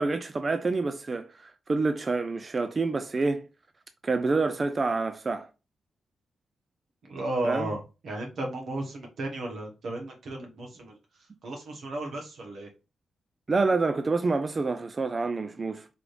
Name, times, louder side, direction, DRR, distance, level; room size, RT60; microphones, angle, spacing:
voice 1, 0.0-3.5 4.0-5.5 7.4-7.8 13.5-15.9, right 3 dB, 40° right, 0.4 m, -27 dB
voice 2, 7.1-11.0 11.4-12.7, right 1 dB, 75° right, 1.1 m, -34 dB
4.8 x 2.5 x 3.2 m
cardioid pair, 75°, 0 cm